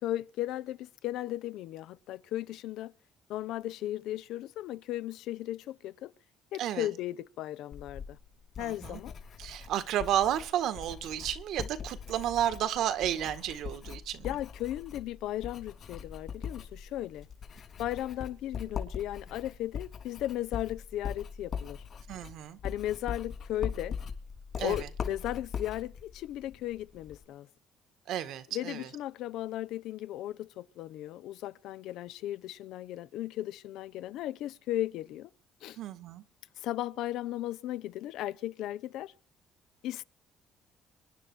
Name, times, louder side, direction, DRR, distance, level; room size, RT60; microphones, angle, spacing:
voice 1, 0.0-2.9 3.3-6.1 6.5-8.2 8.6-9.1 14.2-17.3 17.8-21.8 22.6-24.0 24.6-27.5 28.5-35.3 35.6-35.8 36.6-39.1 39.8-40.0, left 14 dB, 80° left, 0.7 m, -36 dB
voice 2, 6.6-6.9 8.6-9.0 9.4-14.3 22.1-22.6 24.6-24.9 28.1-28.9 35.8-36.2, right 11 dB, 75° right, 1.7 m, -32 dB
Writing, 7.7-27.2, left 6 dB, 55° left, 3.4 m, -41 dB
25.0 x 10.0 x 4.5 m
cardioid pair, 85°, 0 cm